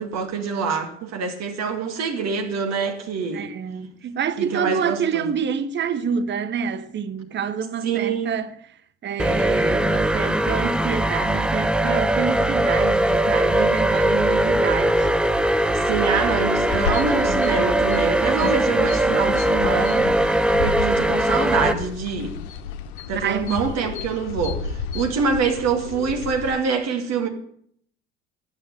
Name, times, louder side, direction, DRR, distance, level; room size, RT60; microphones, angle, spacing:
voice 1, 0.0-3.5 4.4-5.3 7.8-8.4 15.7-22.4 23.1-27.3, right 5 dB, 45° right, 2.5 m, -25 dB
voice 2, 3.3-8.6 9.0-15.1 23.1-23.6, right 7 dB, 30° right, 1.0 m, -27 dB
sound 1, 9.2-21.7, right 1 dB, 5° right, 0.5 m, -20 dB
sound 2, 16.7-26.5, left 6 dB, 55° left, 1.1 m, -32 dB
11.5 x 9.4 x 8.6 m
figure-of-eight pair, 60°, 37 cm